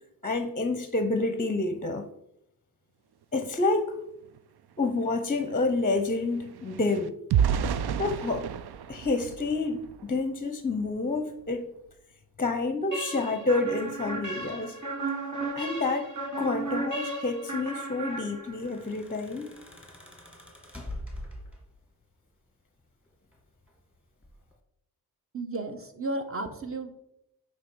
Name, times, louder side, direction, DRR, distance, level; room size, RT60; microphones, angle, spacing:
voice 1, 0.2-2.1 3.3-4.0 4.8-7.1 8.0-8.5 8.9-11.7 12.4-14.8 15.5-16.1 16.4-19.5, left 3 dB, 25° left, 7 dB, 0.6 m, -28 dB
sound 1, 4.3-4.4 4.7-10.2 10.7-10.9 11.3-11.5, right 8 dB, 80° right, 0.5 m, -31 dB
sound 2, 12.9-18.8, right 2 dB, 50° right, 1.6 m, -35 dB
sound 3, 18.3-21.9 23.1-23.8 24.2-24.5, left 1 dB, 5° right, 1.9 m, -43 dB
voice 2, 25.3-26.9, right 2 dB, 35° right, 6 dB, 1.1 m, -33 dB
9.2 x 3.3 x 6.1 m, 0.81 s
wide cardioid pair, 100°, 39 cm